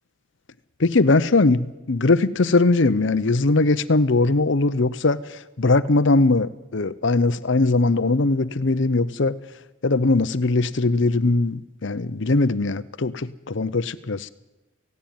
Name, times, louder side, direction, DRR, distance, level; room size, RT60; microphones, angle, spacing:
voice 1, 0.8-9.4 9.8-14.3, left 3 dB, 60° left, 16 dB, 0.7 m, -20 dB
17.5 x 16.0 x 9.3 m, 1.1 s
head